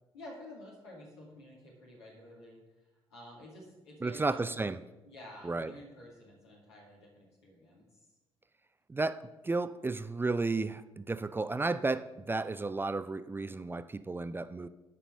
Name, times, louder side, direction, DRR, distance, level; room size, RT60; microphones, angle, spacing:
voice 1, 0.1-2.6 3.1-4.6 5.0-8.1, left 1 dB, 75° left, 2.3 m, -51 dB
voice 2, 4.0-4.8 5.4-5.7 8.9-14.7, right 3 dB, 15° right, 0.4 m, -33 dB
9.8 x 5.5 x 6.3 m
figure-of-eight pair, 45°, 14 cm